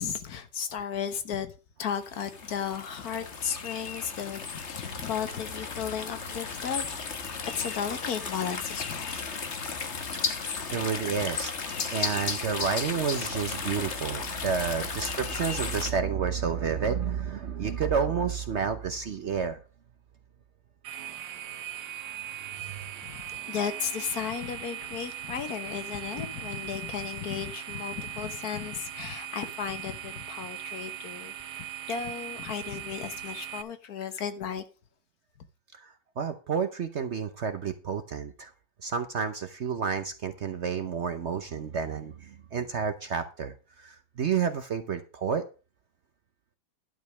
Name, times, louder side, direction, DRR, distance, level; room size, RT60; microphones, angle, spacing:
voice 1, 0.0-1.5 1.8-6.9 7.2-9.2 22.6-34.6, left 8 dB, 65° left, 10 dB, 1.5 m, -35 dB
sound 1, 2.0-15.9, left 5 dB, 45° left, 1.4 m, -35 dB
voice 2, 10.2-11.5 11.9-19.6 22.6-22.8 35.7-38.5 38.8-45.4, right 6 dB, 55° right, 9 dB, 0.9 m, -30 dB
sound 2, 20.8-33.6, right 11 dB, 75° right, 1.4 m, -39 dB
11.5 x 5.2 x 6.2 m, 0.33 s
omnidirectional pair, 1.8 m